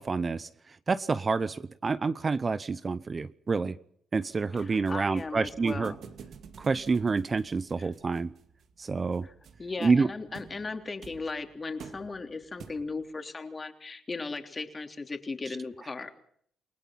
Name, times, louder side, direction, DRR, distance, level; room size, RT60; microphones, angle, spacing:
voice 1, 0.0-3.8 4.1-5.9 6.6-8.3 8.8-9.3 9.8-10.1, right 4 dB, 35° right, 15 dB, 0.8 m, -28 dB
sound 1, 4.3-13.1, right 6 dB, 65° right, 2.4 m, -51 dB
voice 2, 4.5-6.0 7.8-7.9 9.2-16.2, left 3 dB, 30° left, 6 dB, 3.4 m, -37 dB
29.0 x 18.5 x 5.8 m, 0.64 s
cardioid pair, 90°, 0 cm